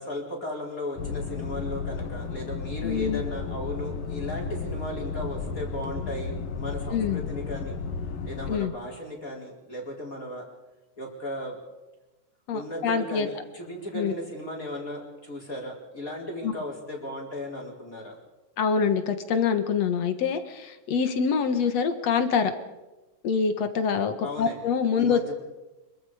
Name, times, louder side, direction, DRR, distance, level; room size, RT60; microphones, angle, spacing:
voice 1, 0.0-7.8 8.3-10.5 11.0-11.6 12.5-18.2 24.2-24.6 25.0-25.3, left 1 dB, 25° left, -1 dB, 4.5 m, -36 dB
sound 1, 1.0-8.6, left 5 dB, 80° left, 3.3 m, -33 dB
voice 2, 2.8-3.2 6.9-7.2 8.5-8.7 12.5-13.3 13.9-14.1 16.4-16.5 18.6-22.5 23.2-25.2, left 6 dB, 60° left, 8 dB, 2.4 m, -25 dB
26.0 x 23.5 x 5.0 m, 1.1 s
omnidirectional pair, 3.8 m